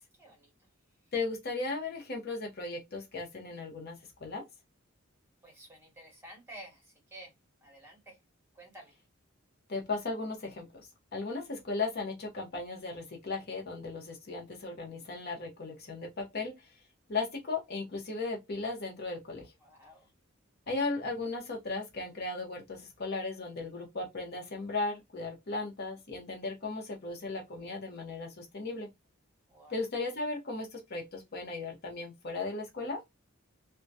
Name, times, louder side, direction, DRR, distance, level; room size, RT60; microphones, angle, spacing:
voice 1, 0.2-0.7 5.4-7.3 7.6-8.2 8.5-9.0 19.6-20.1 29.5-29.8, right 1 dB, 10° right, 0.8 m, -51 dB
voice 2, 1.1-4.4 9.7-16.5 17.1-19.5 20.7-28.9 29.7-33.0, left 3 dB, 50° left, 0.7 m, -36 dB
2.2 x 2.1 x 2.6 m
head